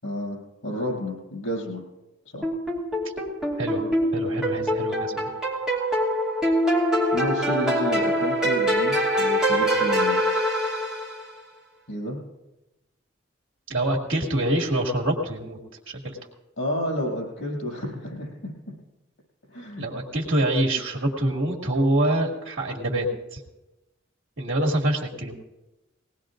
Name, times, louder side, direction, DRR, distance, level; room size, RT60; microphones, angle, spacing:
voice 1, 0.0-1.8 2.3-2.5 7.1-10.2 11.9-12.2 16.6-18.7 19.5-19.8, equal, 85° left, -1 dB, 7.1 m, -30 dB
sound 1, 2.4-11.3, equal, 5° right, 2.5 m, -24 dB
voice 2, 4.1-5.3 13.7-15.6 15.9-16.2 19.8-23.1 23.3-23.4 24.4-25.3, right 1 dB, 75° right, -1 dB, 2.3 m, -25 dB
21.0 x 18.5 x 2.6 m, 1.0 s
head